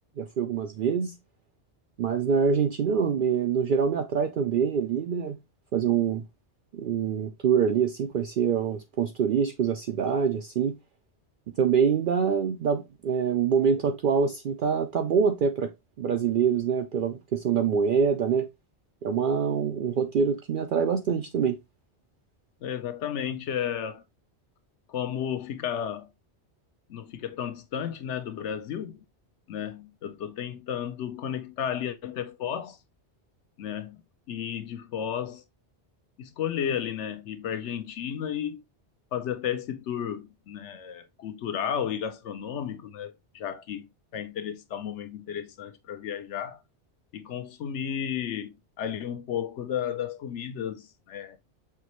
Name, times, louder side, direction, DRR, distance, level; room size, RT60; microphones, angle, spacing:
voice 1, 0.2-1.1 2.0-5.4 5.7-6.2 6.7-10.8 11.6-15.7 16.0-18.5 19.0-21.6, right 6 dB, 60° right, 0.6 m, -25 dB
voice 2, 22.6-24.0 24.9-26.1 26.9-29.0 29.5-32.8 33.6-34.0 34.3-35.4 36.2-38.6 39.1-43.9 44.1-46.6 47.1-51.4, left 9 dB, 85° left, 1.0 m, -33 dB
5.8 x 3.0 x 2.9 m
omnidirectional pair, 1.2 m